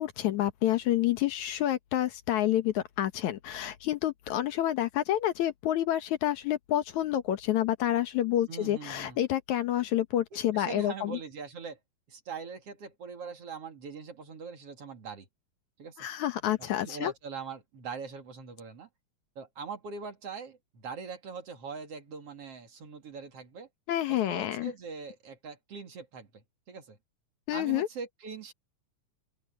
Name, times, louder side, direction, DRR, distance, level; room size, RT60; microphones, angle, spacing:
voice 1, 0.0-11.2 16.0-17.1 23.9-24.7 27.5-27.9, left 12 dB, 75° left, 2.5 m, -28 dB
voice 2, 8.5-9.2 10.3-11.8 12.1-15.3 15.8-16.1 16.6-18.9 19.4-23.7 24.1-27.0 27.5-28.5, right 5 dB, 55° right, 3.1 m, -42 dB
open air
omnidirectional pair, 3.4 m